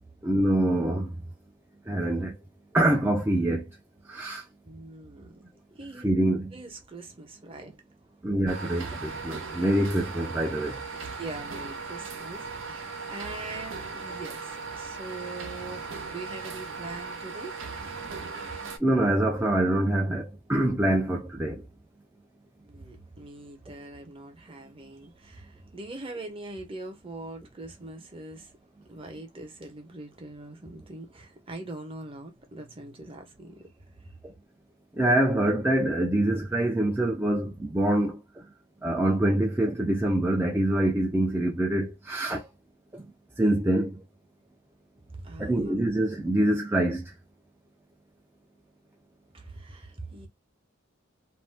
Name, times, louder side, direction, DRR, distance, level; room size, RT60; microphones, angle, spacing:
voice 1, 0.2-1.1 1.9-2.3 2.7-3.6 4.1-4.4 6.0-6.5 8.2-10.8 18.8-21.6 35.0-38.1 38.8-42.4 43.4-43.9 45.4-47.0, right 1 dB, 10° right, 0.4 m, -25 dB
voice 2, 4.6-5.4 5.8-6.1 6.5-7.7 10.9-17.6 22.6-28.5 28.9-33.7 45.1-45.7 49.3-50.3, right 2 dB, 30° right, 0.8 m, -42 dB
sound 1, 8.5-18.8, right 4 dB, 75° right, 0.7 m, -38 dB
2.6 x 2.1 x 3.2 m
head